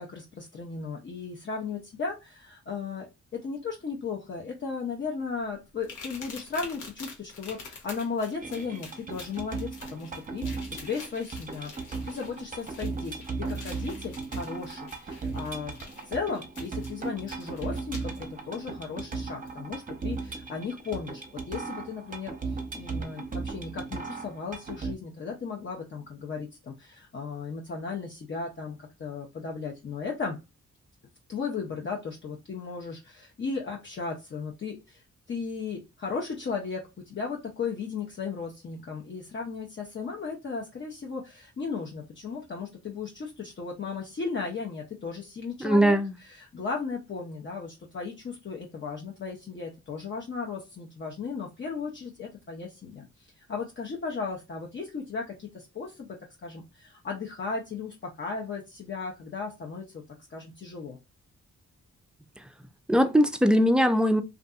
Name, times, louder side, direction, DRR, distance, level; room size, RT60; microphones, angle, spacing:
voice 1, 0.0-15.7 16.0-30.4 31.3-46.0 46.3-60.0 60.3-61.0, left 5 dB, 40° left, 0.6 m, -36 dB
sound 1, 5.8-18.2 19.5-19.6 20.1-20.3, left 4 dB, 80° left, 0.9 m, -47 dB
sound 2, 8.4-24.9, right 4 dB, 25° right, 0.8 m, -37 dB
voice 2, 45.6-46.1 62.9-64.2, equal, 5° right, 0.3 m, -21 dB
2.5 x 2.4 x 2.3 m
cardioid pair, 65°, 30 cm